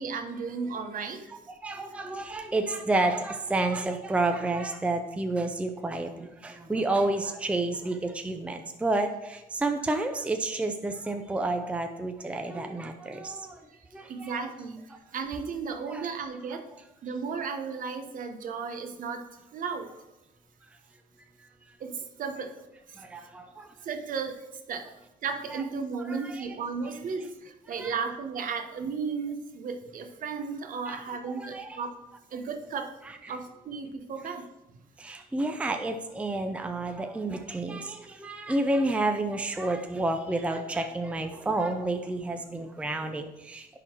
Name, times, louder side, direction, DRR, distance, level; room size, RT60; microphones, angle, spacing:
voice 1, 0.0-1.3 14.0-16.7 17.0-20.0 21.8-22.5 22.9-23.0 23.8-24.9 25.2-31.9 32.3-32.9 33.3-34.5, right 5 dB, 55° right, 6 dB, 1.0 m, -34 dB
voice 2, 1.3-13.6 13.9-14.5 15.9-16.1 23.0-23.7 25.5-25.6 26.0-26.5 27.2-27.3 27.8-28.0 30.9-31.8 33.2-33.4 35.0-43.7, right 2 dB, 5° right, 6 dB, 0.5 m, -30 dB
10.5 x 3.9 x 4.6 m, 0.97 s
cardioid pair, 110°, 17 cm